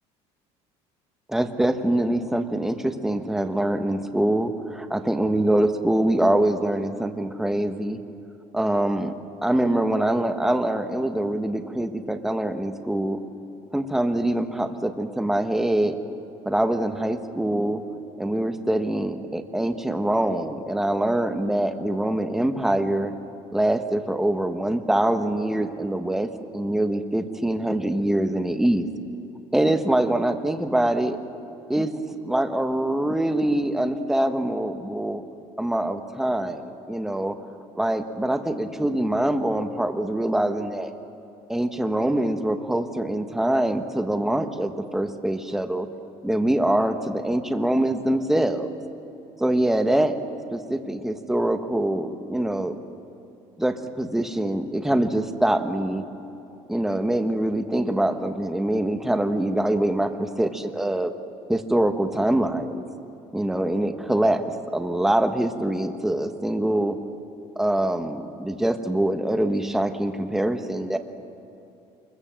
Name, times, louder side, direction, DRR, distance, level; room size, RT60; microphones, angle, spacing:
voice 1, 1.3-8.0 8.5-9.1 9.4-13.2 13.7-16.0 16.4-17.8 18.2-23.1 23.5-28.9 29.5-31.2 31.7-35.2 35.6-37.3 37.8-40.9 41.5-45.9 46.2-48.7 49.4-50.2 50.5-52.8 53.6-56.0 56.7-61.1 61.5-62.8 63.3-67.0 67.6-71.0, right 1 dB, 5° right, 7 dB, 1.2 m, -24 dB
24.5 x 21.5 x 7.5 m, 2.9 s
cardioid pair, 155°, 11 cm